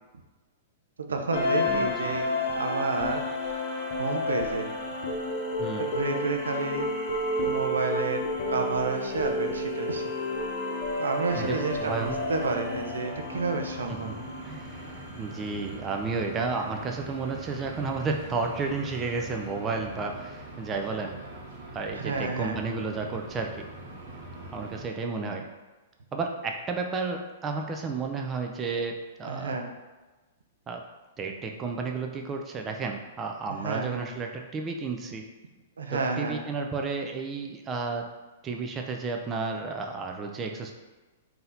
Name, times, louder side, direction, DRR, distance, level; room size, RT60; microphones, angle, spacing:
voice 1, 1.1-3.3 4.0-4.7 5.8-6.9 7.4-10.1 11.0-14.1 21.9-22.6 29.3-29.7 33.6-34.1 35.8-36.4, right 3 dB, 90° right, 4 dB, 0.5 m, -30 dB
sound 1, 1.3-15.4, left 1 dB, 45° left, 0.9 m, -31 dB
voice 2, 1.6-2.1 5.6-5.9 11.4-12.2 13.9-14.2 14.4-21.1 21.7-23.7 24.5-25.5 26.1-29.5 30.7-30.8 31.2-35.2 35.9-38.1 38.4-40.7, right 4 dB, 20° right, 2 dB, 0.5 m, -32 dB
sound 2, 11.3-24.8, right 2 dB, 60° right, 1.0 m, -43 dB
3.9 x 2.8 x 3.9 m, 1.2 s
hypercardioid pair, 125°, 0 cm